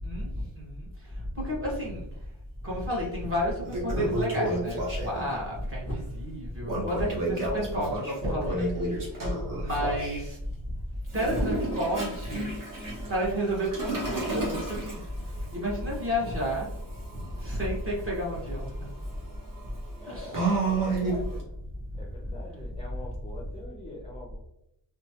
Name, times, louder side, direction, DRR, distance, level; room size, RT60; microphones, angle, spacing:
voice 1, 0.0-2.1 2.6-10.7 11.1-12.5 13.1-16.7 17.1-18.7 20.0-20.3, equal, 30° right, -5 dB, 1.2 m, -31 dB
Toilet flush, 2.9-3.0 3.5-5.4 6.6-10.2 11.1-21.4, right 2 dB, 45° right, 1.1 m, -32 dB
voice 2, 20.0-21.4 22.0-24.4, left 1 dB, 15° left, -3 dB, 0.4 m, -44 dB
2.9 x 2.3 x 2.8 m, 0.79 s
wide cardioid pair, 160°, 47 cm